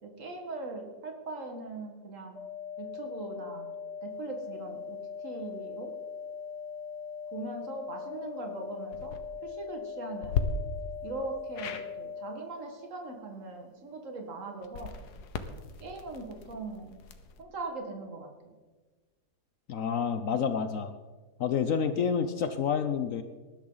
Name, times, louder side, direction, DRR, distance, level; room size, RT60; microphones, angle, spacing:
voice 1, 0.0-2.4 2.8-3.7 4.0-5.0 5.2-5.9 7.3-9.2 9.4-10.5 11.0-14.9 15.8-17.0 17.4-18.5, right 3 dB, 55° right, 3 dB, 2.2 m, -40 dB
sound 1, 2.3-12.3, left 6 dB, 45° left, 2.5 m, -40 dB
sound 2, 8.8-9.2 10.2-10.4 11.5-11.9 14.6-17.4, left 8 dB, 85° left, 1.5 m, -36 dB
voice 2, 19.7-20.9 21.4-23.2, left 7 dB, 65° left, 9 dB, 1.0 m, -28 dB
19.5 x 12.0 x 4.0 m, 1.3 s
omnidirectional pair, 1.7 m